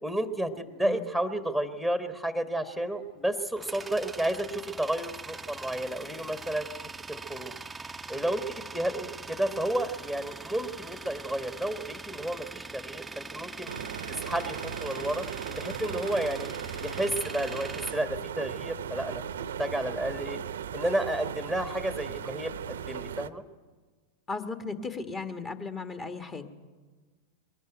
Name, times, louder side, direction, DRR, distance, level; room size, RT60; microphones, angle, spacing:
voice 1, 0.0-6.7 7.1-7.5 8.1-13.7 14.2-19.2 19.6-20.4 20.7-23.4, right 1 dB, 5° left, 8 dB, 1.4 m, -31 dB
Tools, 3.1-18.9, right 3 dB, 10° right, 0.7 m, -42 dB
sound 1, 13.7-23.3, right 8 dB, 65° right, 0.8 m, -37 dB
voice 2, 24.3-26.5, left 4 dB, 20° left, 8 dB, 1.6 m, -36 dB
22.0 x 18.0 x 9.2 m, 1.4 s
figure-of-eight pair, 90°, 0 cm